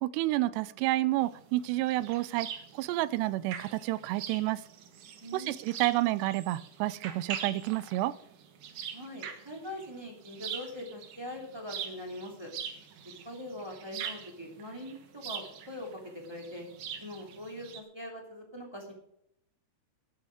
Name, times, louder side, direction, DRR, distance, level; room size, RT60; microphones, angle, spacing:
voice 1, 0.0-4.6 5.3-8.1, right 17 dB, 80° right, 18 dB, 2.7 m, -30 dB
sound 1, 1.2-17.8, right 8 dB, 60° right, 2.3 m, -43 dB
voice 2, 5.2-5.6 8.9-12.5 13.2-16.7 17.0-18.9, left 1 dB, 10° right, 0 dB, 1.8 m, -42 dB
13.5 x 10.5 x 5.0 m, 0.78 s
omnidirectional pair, 4.9 m